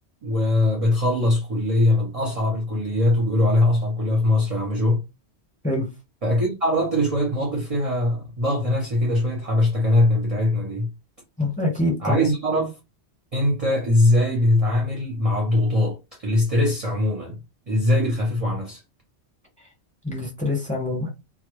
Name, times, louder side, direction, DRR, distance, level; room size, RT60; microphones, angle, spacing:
voice 1, 0.2-5.0 6.2-10.9 12.0-12.7 13.3-17.4 17.7-18.8, left 1 dB, 40° right, 0.6 m, -21 dB
voice 2, 11.4-12.3 20.0-21.1, left 1 dB, 5° left, 0.9 m, -25 dB
2.1 x 2.0 x 3.0 m
omnidirectional pair, 1.2 m